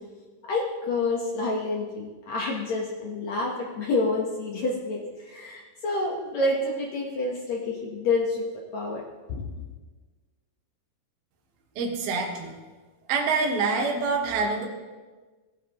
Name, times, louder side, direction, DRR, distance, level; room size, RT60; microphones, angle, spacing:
voice 1, 0.5-8.4 8.7-9.0 9.3-9.4, left 2 dB, 75° left, -1 dB, 1.6 m, -28 dB
voice 2, 11.8-12.5 13.1-14.7, right 4 dB, 70° right, 0 dB, 3.1 m, -26 dB
16.5 x 10.0 x 3.0 m, 1.3 s
omnidirectional pair, 4.7 m